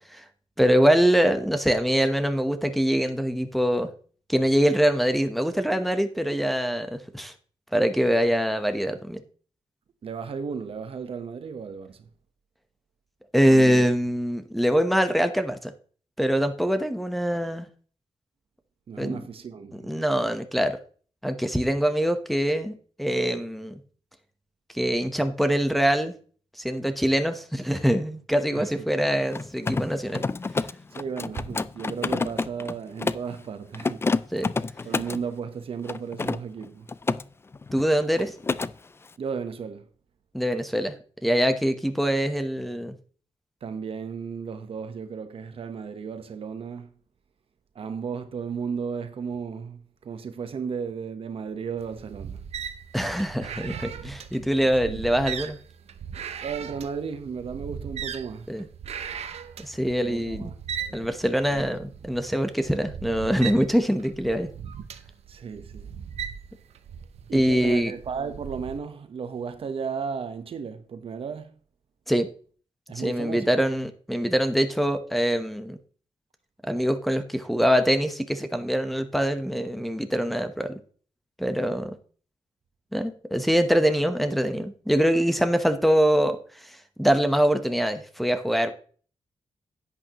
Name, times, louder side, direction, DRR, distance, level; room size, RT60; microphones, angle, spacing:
voice 1, 0.6-3.9 4.3-7.3 7.7-9.2 13.3-15.7 16.2-17.7 19.0-19.2 19.8-20.8 21.2-23.7 24.7-26.1 26.6-30.2 34.3-34.5 37.7-38.3 40.3-40.9 41.2-42.9 52.9-55.6 58.5-58.7 59.6-60.4 60.9-64.5 67.3-67.9 72.1-72.3 73.0-75.8 76.6-80.8 81.4-81.9 82.9-88.7, equal, ahead, 1.0 m, -24 dB
voice 2, 10.0-12.1 13.5-13.9 18.9-19.9 28.5-28.7 30.9-34.1 34.8-36.9 39.2-39.9 43.6-46.9 47.7-52.4 54.6-55.0 56.4-58.5 60.0-61.2 61.5-61.7 65.3-65.9 67.3-71.6 72.9-73.5, right 6 dB, 60° right, 1.1 m, -34 dB
Mechanisms, 29.2-33.3 33.7-35.2 35.9-37.2 37.5-37.9 38.2-38.7, left 3 dB, 25° left, 0.4 m, -28 dB
sound 1, 51.8-68.8, right 8 dB, 85° right, 0.8 m, -38 dB
10.5 x 8.9 x 3.0 m
wide cardioid pair, 115°, 11 cm